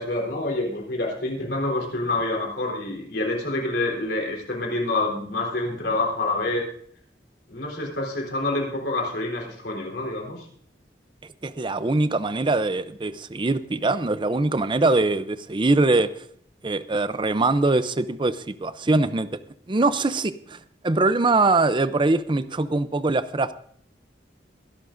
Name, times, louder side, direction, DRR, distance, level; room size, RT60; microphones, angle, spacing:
voice 1, 0.0-6.6 7.5-10.5, left 2 dB, 75° left, -1 dB, 3.8 m, -27 dB
voice 2, 11.4-16.1 16.6-19.4 19.7-20.6 20.8-23.5, right 2 dB, 30° right, 13 dB, 0.5 m, -22 dB
23.5 x 12.0 x 2.6 m, 0.62 s
head